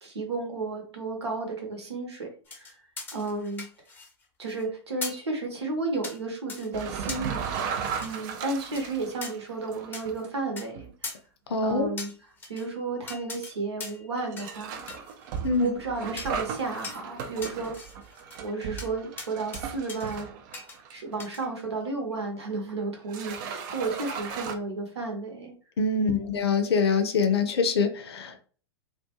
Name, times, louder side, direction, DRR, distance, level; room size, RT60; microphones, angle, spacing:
voice 1, 0.0-2.3 2.5-2.7 3.1-3.6 4.4-7.7 8.0-11.1 11.6-12.1 12.5-14.9 15.6-17.7 18.4-20.3 20.9-25.5 26.0-26.4, right 3 dB, 75° right, 2 dB, 0.9 m, -33 dB
sound 1, 2.5-4.2 4.5-4.6 5.0-5.3 6.0-6.2 6.5-6.7 7.1-8.3 8.8-8.9 9.2-9.3 9.9-10.0 10.6-10.7 11.0-11.2 12.0-12.7 13.1-13.5 13.8-14.1 14.4-14.6 14.9-15.7 16.2-16.4 16.8-17.0 17.4-18.4 18.8-18.9 19.2-19.6 19.9-20.2 20.5-20.8 21.2-21.4, left 3 dB, 15° left, 0.6 m, -40 dB
sound 2, 6.7-10.3 10.8-10.9 11.6-11.7 12.6-12.7 14.2-21.4 21.9-22.0 22.8-22.9 23.1-24.5, right 7 dB, 45° right, 0.4 m, -36 dB
voice 2, 11.5-11.9 15.4-15.8 25.8-28.4, left 4 dB, 65° left, 8 dB, 0.5 m, -24 dB
2.3 x 2.2 x 2.9 m, 0.41 s
figure-of-eight pair, 100°, 14 cm